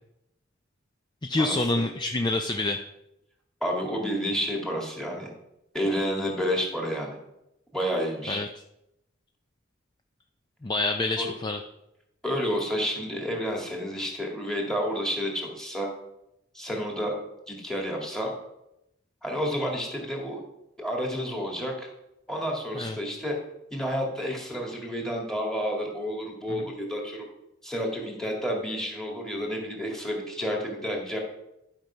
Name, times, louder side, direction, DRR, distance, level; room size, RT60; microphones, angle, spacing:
voice 1, 1.2-2.8 8.3-8.5 10.6-11.6 22.7-23.0 26.5-26.6, left 2 dB, 25° left, 5 dB, 0.5 m, -27 dB
voice 2, 3.6-5.3 5.7-7.2 7.7-8.4 11.2-11.3 12.2-15.9 16.5-17.2 17.5-18.3 19.2-20.4 20.8-21.9 22.3-23.4 23.7-27.3 27.6-31.2, equal, 5° left, 0 dB, 2.1 m, -30 dB
11.0 x 5.3 x 5.7 m, 0.86 s
head